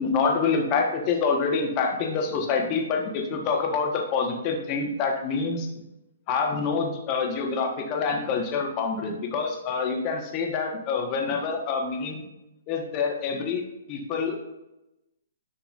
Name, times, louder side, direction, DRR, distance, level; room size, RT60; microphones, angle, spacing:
voice 1, 0.0-5.7 6.3-12.2 12.7-13.6 13.9-14.4, left 5 dB, 30° left, 2 dB, 1.5 m, -26 dB
10.5 x 5.8 x 2.6 m, 0.93 s
figure-of-eight pair, 125°, 0 cm